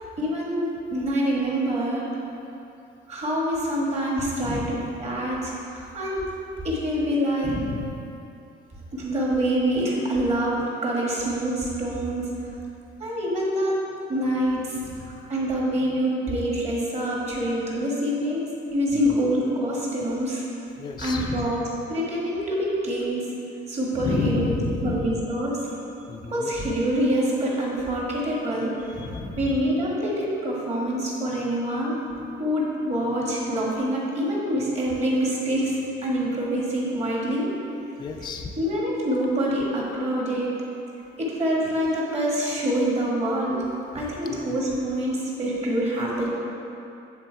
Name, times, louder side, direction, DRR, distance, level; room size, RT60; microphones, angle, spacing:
voice 1, 0.2-2.0 3.1-6.3 6.6-7.6 8.9-12.3 13.0-14.8 15.3-20.4 21.0-21.6 21.9-23.3 23.7-24.4 24.8-25.7 26.3-29.0 29.4-32.0 32.4-37.6 38.6-40.5 41.2-43.6 43.9-46.3, equal, 35° right, -4 dB, 1.6 m, -26 dB
voice 2, 4.4-4.8 7.4-8.0 14.8-15.2 18.9-19.3 20.8-21.6 23.9-25.2 26.1-26.5 28.9-29.6 38.0-38.5 43.9-44.6, left 4 dB, 20° left, 3 dB, 0.4 m, -31 dB
8.9 x 4.0 x 4.6 m, 2.8 s
cardioid pair, 150°, 20 cm